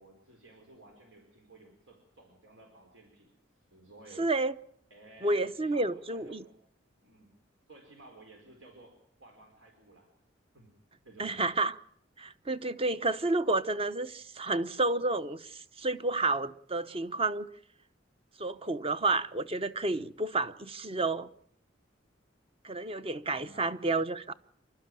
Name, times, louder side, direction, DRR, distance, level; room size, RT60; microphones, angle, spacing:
voice 1, 0.0-4.3 4.9-6.6 7.0-7.3 7.7-10.1 10.5-10.7 11.0-11.5 23.3-23.8, right 2 dB, 85° right, 4.4 m, -55 dB
voice 2, 4.2-4.5 5.2-6.4 11.2-11.8 12.2-17.5 18.4-21.3 22.6-24.3, right 2 dB, 30° right, 0.9 m, -30 dB
28.0 x 12.5 x 9.1 m
head